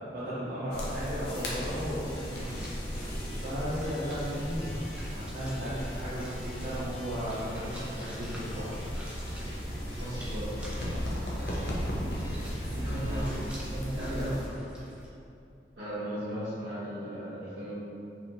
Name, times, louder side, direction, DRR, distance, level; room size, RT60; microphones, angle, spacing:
voice 1, 0.0-2.6 3.4-4.6 5.1-8.8 10.9-11.2 12.2-13.4 13.7-14.4, equal, 45° right, -11 dB, 0.7 m, -35 dB
sound 1, 0.7-14.5, equal, 65° left, 0.6 m, -36 dB
sound 2, 1.2-13.6, equal, 90° left, 1.5 m, -51 dB
sound 3, 2.1-15.1, equal, 5° right, 0.5 m, -45 dB
voice 2, 10.0-10.5 12.8-13.4 15.7-17.7, equal, 70° right, -13 dB, 1.0 m, -37 dB
4.3 x 2.9 x 2.6 m, 2.6 s
head